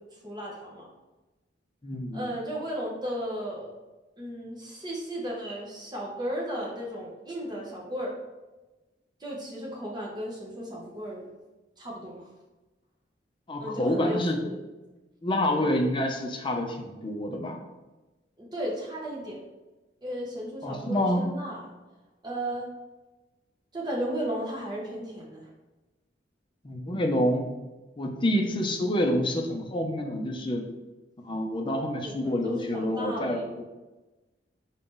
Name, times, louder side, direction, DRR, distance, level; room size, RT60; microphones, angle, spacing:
voice 1, 0.2-0.9 2.1-3.7 4.2-8.1 9.2-11.2 11.8-12.3 13.6-14.6 18.4-19.4 20.0-21.7 22.2-22.7 23.7-25.5 28.3-28.4 32.0-33.6, equal, 25° right, -3 dB, 0.9 m, -35 dB
voice 2, 1.8-2.3 13.5-14.4 15.2-17.6 20.6-21.2 26.6-27.5 28.0-30.7 31.2-33.6, left 1 dB, 30° left, 2 dB, 0.6 m, -27 dB
4.7 x 2.7 x 3.7 m, 1.1 s
head